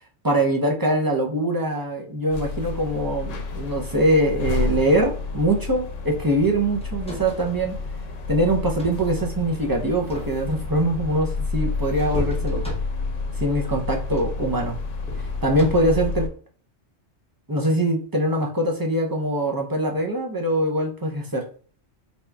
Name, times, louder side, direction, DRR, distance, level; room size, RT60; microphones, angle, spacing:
voice 1, 0.2-7.8 8.3-12.7 13.4-14.8 15.4-16.3 17.5-21.5, right 1 dB, 30° right, 0 dB, 0.4 m, -23 dB
sound 1, 2.3-16.3, left 3 dB, 90° left, 1.0 m, -30 dB
sound 2, 6.8-7.6 8.5-9.1 9.9-10.7 12.1-13.2 14.1-14.4 15.0-16.1 17.7-17.9, equal, 5° left, 0.7 m, -36 dB
4.3 x 2.4 x 3.3 m, 0.43 s
omnidirectional pair, 1.3 m